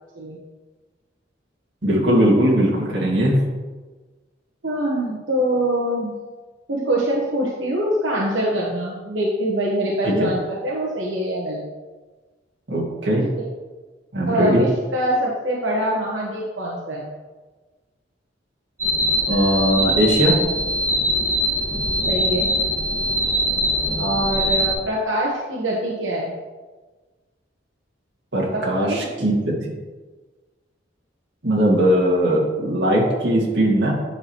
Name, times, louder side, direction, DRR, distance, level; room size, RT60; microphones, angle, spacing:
voice 1, 1.8-3.4 10.0-10.3 12.7-13.2 14.1-14.6 19.3-20.4 28.3-29.7 31.4-33.9, right 1 dB, 65° right, -4 dB, 2.1 m, -19 dB
voice 2, 4.6-6.1 6.7-11.6 13.2-13.5 14.2-17.1 22.0-22.5 24.0-26.3 28.4-29.1, right 1 dB, 85° right, -5 dB, 1.3 m, -24 dB
sound 1, 18.8-24.7, equal, 15° right, 1.8 m, -22 dB
9.6 x 6.0 x 3.1 m, 1.3 s
head